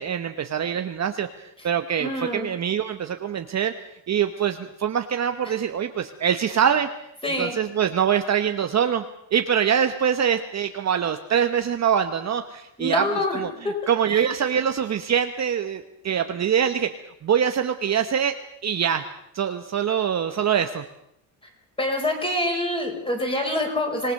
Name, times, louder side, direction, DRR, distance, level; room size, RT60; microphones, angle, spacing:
voice 1, 0.0-3.7 4.1-6.9 7.4-9.0 9.3-16.9 17.2-18.4 18.6-19.1 19.3-20.8, right 8 dB, 35° right, 7 dB, 1.1 m, -24 dB
voice 2, 2.0-2.5 5.5-5.6 7.2-7.5 12.8-13.7 21.8-24.1, left 1 dB, 10° left, 2 dB, 4.9 m, -26 dB
26.5 x 19.5 x 6.6 m, 0.76 s
cardioid pair, 160°, 45 cm